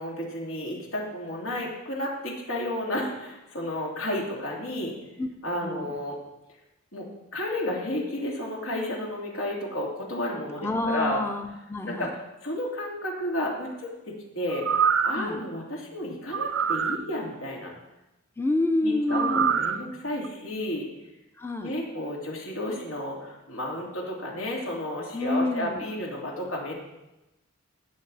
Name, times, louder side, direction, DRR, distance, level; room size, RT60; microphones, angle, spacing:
voice 1, 0.0-4.9 5.4-6.2 6.9-11.2 11.9-12.2 12.4-14.6 15.0-17.7 18.8-20.9 21.6-26.7, left 1 dB, 85° left, -2 dB, 2.9 m, -32 dB
voice 2, 5.6-5.9 10.6-12.1 15.1-15.5 18.4-19.7 21.4-21.7 25.1-25.9, left 2 dB, 10° left, 5 dB, 0.5 m, -28 dB
sound 1, 14.5-15.3 16.3-17.0 19.1-19.8 20.2-20.3, right 7 dB, 65° right, 0.5 m, -25 dB
17.0 x 6.7 x 4.1 m, 0.96 s
head